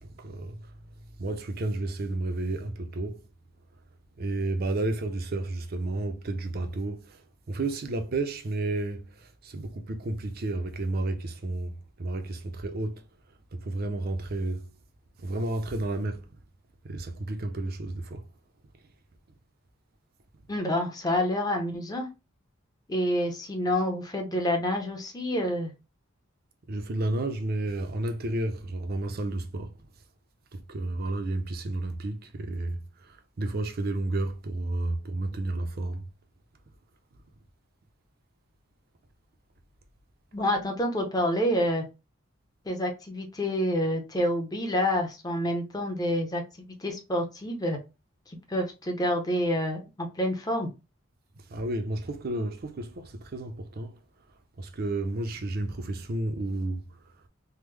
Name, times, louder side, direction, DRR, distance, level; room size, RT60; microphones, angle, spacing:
voice 1, 0.0-0.6 1.2-3.2 4.2-7.2 7.5-13.0 13.5-14.7 15.2-16.2 16.8-18.2 26.7-29.7 30.5-36.0 51.5-54.0 54.6-56.8, right 2 dB, 45° right, 0.5 m, -31 dB
voice 2, 20.5-22.1 22.9-25.7 40.3-41.8 42.7-47.8 48.3-50.7, left 1 dB, 20° left, 0.6 m, -28 dB
3.5 x 2.0 x 3.2 m
head